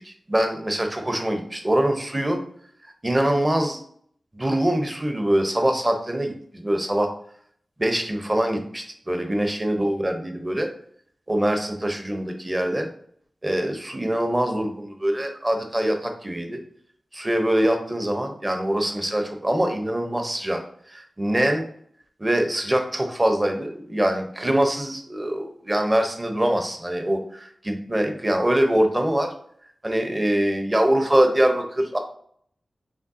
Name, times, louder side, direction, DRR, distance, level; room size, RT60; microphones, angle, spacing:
voice 1, 0.0-2.4 3.0-3.8 4.3-7.1 7.8-10.7 11.3-12.9 13.4-16.6 17.1-20.6 20.9-21.7 22.2-29.3 29.8-32.0, right 1 dB, 25° right, 4 dB, 0.8 m, -23 dB
5.1 x 3.3 x 2.7 m, 0.62 s
wide cardioid pair, 70°, 0 cm